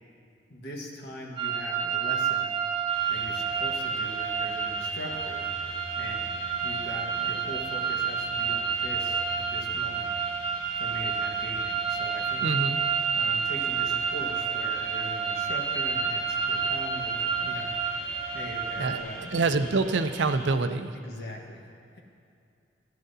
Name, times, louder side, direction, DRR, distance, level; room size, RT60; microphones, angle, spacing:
voice 1, 0.5-2.6 3.1-5.5 6.0-6.3 6.6-10.1 10.8-12.5 13.1-17.7 18.3-19.4 20.9-21.6, left 1 dB, 60° left, -1 dB, 1.5 m, -41 dB
sound 1, 1.4-19.0, right 6 dB, 30° right, 0.7 m, -29 dB
sound 2, 2.9-20.5, equal, 20° left, 2.9 m, -44 dB
voice 2, 12.4-12.8 18.8-20.9, right 3 dB, 85° right, 9 dB, 0.5 m, -26 dB
16.0 x 10.5 x 2.8 m, 2.5 s
head